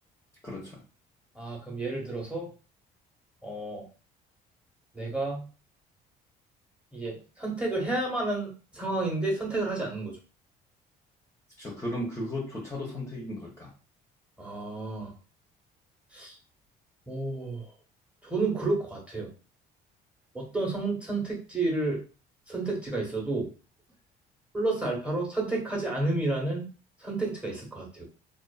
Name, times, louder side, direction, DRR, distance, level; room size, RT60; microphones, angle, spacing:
voice 1, 0.4-0.8 11.6-13.7, left 1 dB, 15° left, -3 dB, 0.7 m, -35 dB
voice 2, 1.3-2.5 3.4-3.9 4.9-5.5 6.9-10.1 14.4-15.1 16.1-16.4 17.1-17.7 18.2-19.3 20.3-22.0 22.5-23.5 24.5-26.7 27.0-28.0, right 2 dB, 5° right, -2 dB, 1.0 m, -31 dB
2.4 x 2.4 x 2.3 m, 0.35 s
cardioid pair, 110°, 17 cm